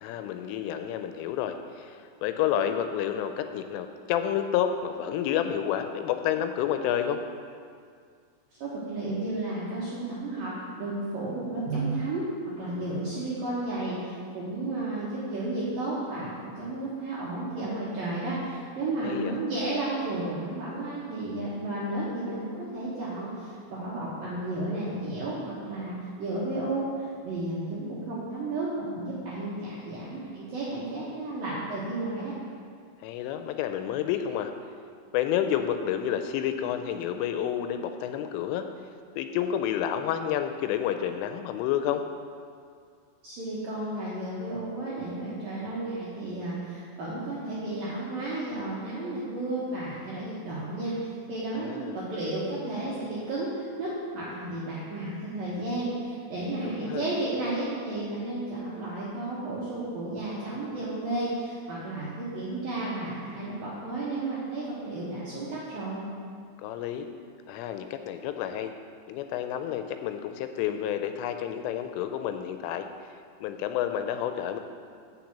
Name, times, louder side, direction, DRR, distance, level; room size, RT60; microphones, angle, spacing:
voice 1, 0.0-1.9 2.2-7.2 19.0-19.4 33.0-34.5 35.1-38.7 39.2-42.0 51.6-52.0 56.6-57.1 66.6-67.1 67.5-68.7 69.1-72.9 73.4-74.6, left 10 dB, 85° left, 8 dB, 3.0 m, -29 dB
voice 2, 8.6-12.3 12.6-32.3 43.2-66.1, right 2 dB, 70° right, -8 dB, 2.2 m, -33 dB
6.7 x 6.1 x 7.2 m, 2.2 s
omnidirectional pair, 5.7 m